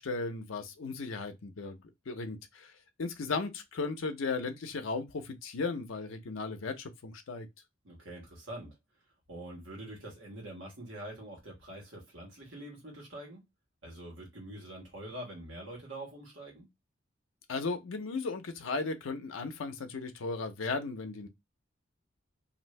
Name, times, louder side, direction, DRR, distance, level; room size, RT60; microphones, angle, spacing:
voice 1, 0.0-1.8 2.1-2.7 3.0-7.5 17.5-21.3, left 4 dB, 90° left, 0.5 m, -36 dB
voice 2, 7.8-8.8 9.3-13.4 13.8-16.7, right 1 dB, 75° right, 1.4 m, -45 dB
2.6 x 2.6 x 3.1 m
head